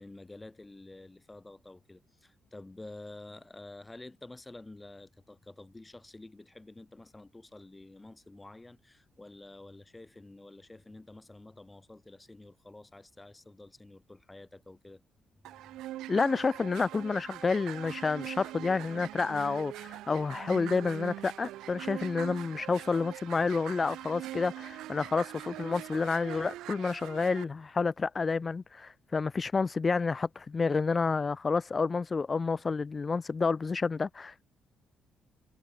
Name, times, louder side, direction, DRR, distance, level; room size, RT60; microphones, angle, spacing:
voice 1, 0.0-15.0, left 2 dB, 15° left, 5.3 m, -49 dB
sound 1, 15.4-27.4, right 15 dB, 90° right, 0.4 m, -42 dB
voice 2, 16.1-34.4, left 4 dB, 30° left, 0.4 m, -29 dB
cardioid pair, 90°, 0 cm